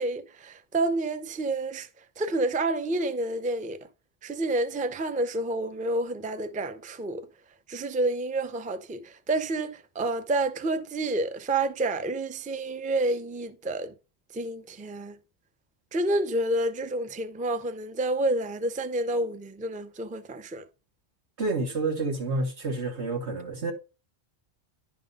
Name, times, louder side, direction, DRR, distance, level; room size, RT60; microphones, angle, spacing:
voice 1, 0.0-3.9 4.2-7.3 7.7-13.9 14.3-15.2 15.9-20.7, right 2 dB, 10° right, 0.4 m, -29 dB
voice 2, 21.4-23.7, right 3 dB, 90° right, 2.0 m, -29 dB
10.5 x 3.8 x 5.4 m
omnidirectional pair, 1.1 m